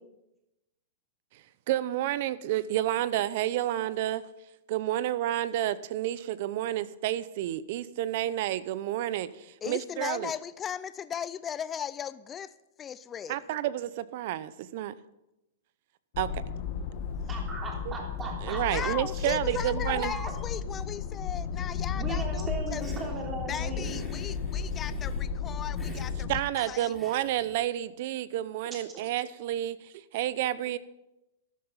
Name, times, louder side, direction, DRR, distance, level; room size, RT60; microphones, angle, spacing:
voice 1, 1.7-4.2 4.7-10.3 13.3-14.9 16.2-16.3 17.9-18.0 18.4-20.1 26.3-30.8, right 13 dB, 50° right, 17 dB, 0.7 m, -30 dB
voice 2, 9.6-13.4 18.7-22.8 23.5-26.3 26.6-27.0, left 8 dB, 20° left, 16 dB, 0.4 m, -37 dB
sound 1, 16.1-26.4, left 6 dB, 45° left, 1.4 m, -33 dB
voice 3, 17.3-18.9 19.9-20.3 22.0-23.9 28.7-28.8, right 4 dB, 15° right, 0 dB, 3.2 m, -37 dB
Hiss, 22.7-23.1 23.8-25.3 25.8-26.1 26.9-27.6, right 1 dB, ahead, 3.8 m, -46 dB
13.0 x 11.5 x 5.7 m, 0.93 s
hypercardioid pair, 150°, 0 cm